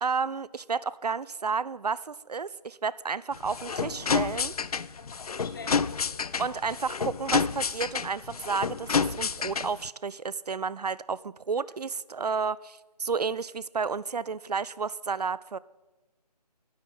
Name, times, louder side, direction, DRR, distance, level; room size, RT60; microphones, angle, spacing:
voice 1, 0.0-4.5 6.4-15.6, right 5 dB, 70° right, 20 dB, 0.5 m, -31 dB
sound 1, 3.3-9.9, left 5 dB, 60° left, 0.4 m, -29 dB
voice 2, 4.9-6.6 11.7-11.8, left 5 dB, 30° left, 6 dB, 1.3 m, -46 dB
10.5 x 7.3 x 8.7 m, 1.1 s
figure-of-eight pair, 150°, 21 cm